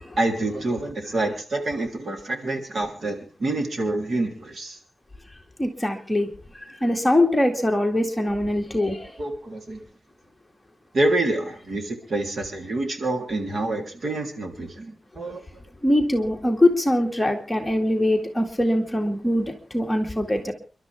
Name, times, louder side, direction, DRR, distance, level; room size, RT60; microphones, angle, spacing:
voice 1, 0.2-4.8 9.2-9.8 10.9-15.4, right 2 dB, 60° right, 3 dB, 3.4 m, -27 dB
voice 2, 5.6-6.3 6.8-9.1 15.8-20.5, left 1 dB, 10° left, 2 dB, 2.2 m, -22 dB
29.5 x 12.0 x 3.5 m, 0.36 s
wide cardioid pair, 150°, 0 cm